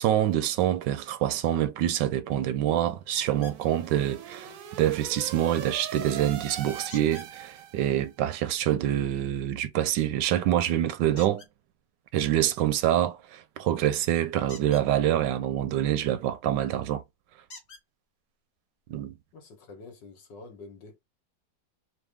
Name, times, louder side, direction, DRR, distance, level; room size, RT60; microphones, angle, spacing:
voice 1, 0.0-11.4 12.1-17.0 18.9-19.1, right 12 dB, 85° right, 1.3 m, -26 dB
sound 1, 3.1-8.1, right 8 dB, 65° right, 0.9 m, -41 dB
sound 2, 3.2-3.6 6.9-7.3 11.1-11.5 14.4-14.9 16.5-16.6 17.5-17.8 18.8-18.9 19.4-19.5, left 3 dB, 40° left, 1.4 m, -47 dB
voice 2, 19.3-21.0, left 3 dB, 75° left, 1.9 m, -47 dB
4.1 x 2.3 x 3.4 m
omnidirectional pair, 1.9 m